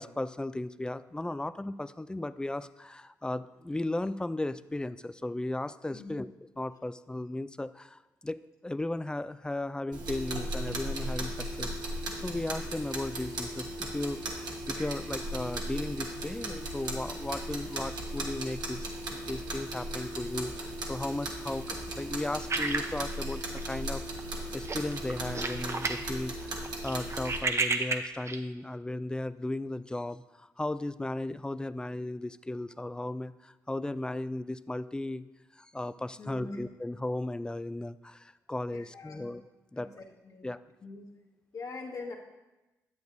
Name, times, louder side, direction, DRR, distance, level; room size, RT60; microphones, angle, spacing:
voice 1, 0.0-6.3 6.6-11.7 12.2-24.0 24.5-35.2 35.5-39.4 39.7-40.0 40.4-40.6, left 2 dB, 10° left, 15 dB, 0.3 m, -36 dB
sound 1, 9.9-27.4, right 1 dB, 70° right, 1.3 m, -37 dB
sound 2, 22.5-23.9 24.2-24.4 24.6-26.1 26.4-28.4, right 3 dB, 40° right, 0.7 m, -32 dB
voice 2, 36.2-36.6 38.7-39.3 39.7-40.5 40.8-41.1 41.5-42.1, left 3 dB, 50° left, 0 dB, 1.5 m, -43 dB
9.3 x 7.9 x 2.7 m, 1.0 s
supercardioid pair, 45°, 8 cm